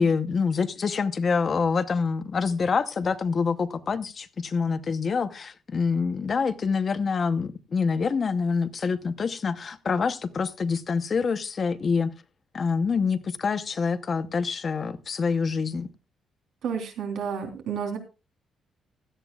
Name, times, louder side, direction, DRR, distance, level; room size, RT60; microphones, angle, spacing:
voice 1, 0.0-12.1 12.5-15.9, left 5 dB, 35° left, 0.8 m, -26 dB
voice 2, 16.6-18.0, right 7 dB, 70° right, 3.3 m, -31 dB
16.5 x 12.5 x 2.3 m
cardioid pair, 165°, 0 cm